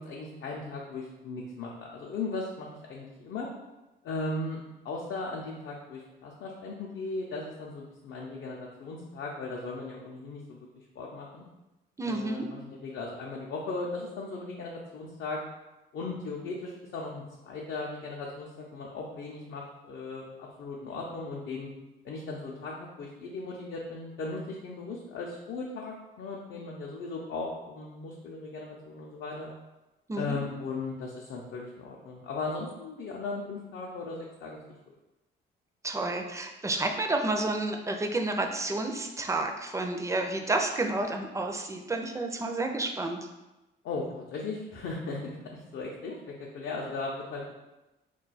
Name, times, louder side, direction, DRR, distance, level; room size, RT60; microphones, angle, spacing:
voice 1, 0.0-3.5 4.0-11.4 12.0-15.4 15.9-21.7 22.0-29.5 30.1-34.6 43.8-47.6, left 3 dB, 65° left, -2 dB, 0.5 m, -37 dB
voice 2, 12.0-12.5 30.1-30.4 35.8-43.3, right 2 dB, 15° right, 3 dB, 0.4 m, -30 dB
2.3 x 2.3 x 4.0 m, 1.0 s
cardioid pair, 90°, 20 cm